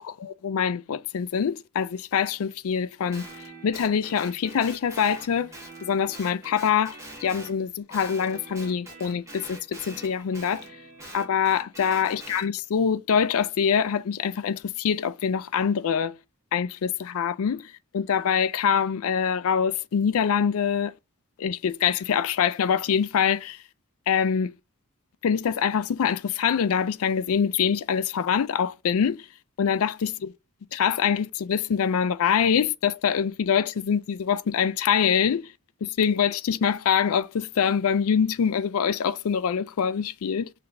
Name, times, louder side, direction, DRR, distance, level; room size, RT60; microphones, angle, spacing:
voice 1, 0.0-3.2 3.6-5.5 5.8-10.7 11.1-16.1 16.5-20.9 21.4-23.6 24.1-24.5 25.2-29.3 29.6-30.3 30.7-35.5 35.8-40.5, left 7 dB, 65° left, 0.4 m, -24 dB
Guitar, 3.1-7.6 7.9-12.5, right 2 dB, 15° right, 1.7 m, -44 dB
5.8 x 3.3 x 2.6 m
head